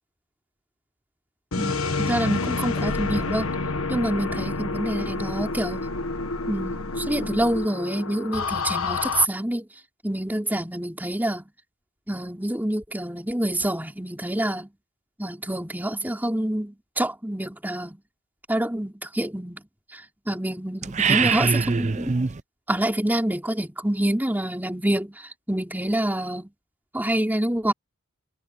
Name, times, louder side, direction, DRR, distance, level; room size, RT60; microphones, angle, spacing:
sound 1, 1.5-9.2, left 3 dB, 70° left, 1.6 m, -28 dB
voice 1, 1.5-3.5 3.9-5.9 6.5-9.7 10.0-11.5 12.1-14.7 15.2-18.0 18.5-22.2 22.7-26.5 26.9-27.7, right 1 dB, 10° right, 3.2 m, -27 dB
sound 2, 20.8-22.4, right 5 dB, 30° right, 0.5 m, -23 dB
head